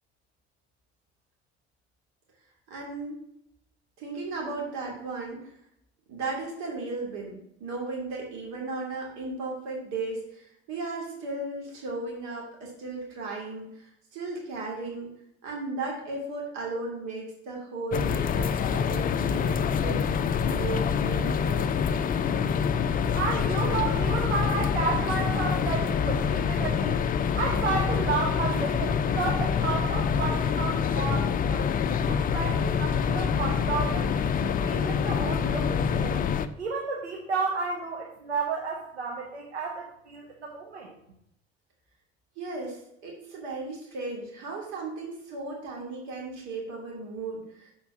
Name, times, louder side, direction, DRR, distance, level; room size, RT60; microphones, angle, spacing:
voice 1, 2.7-3.2 4.0-5.5 6.1-15.1 15.4-20.0 20.4-21.7 42.4-47.7, right 3 dB, 55° right, -1 dB, 2.7 m, -36 dB
sound 1, 17.9-36.5, left 6 dB, 25° left, 0.5 m, -26 dB
voice 2, 23.1-27.0 27.3-31.7 32.1-36.2 36.6-40.9, right 4 dB, 80° right, 0 dB, 1.1 m, -32 dB
7.2 x 4.7 x 6.0 m, 0.75 s
figure-of-eight pair, 65°, 33 cm